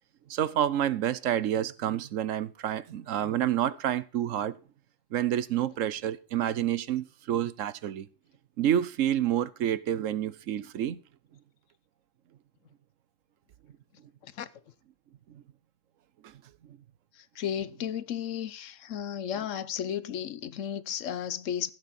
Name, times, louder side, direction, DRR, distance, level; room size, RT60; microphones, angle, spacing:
voice 1, 0.3-4.6 5.1-8.1 8.6-11.0 15.3-15.4 16.2-16.3, right 11 dB, 80° right, 1.1 m, -28 dB
voice 2, 17.2-21.7, left 9 dB, 75° left, 1.1 m, -34 dB
15.5 x 8.3 x 4.2 m
omnidirectional pair, 1.3 m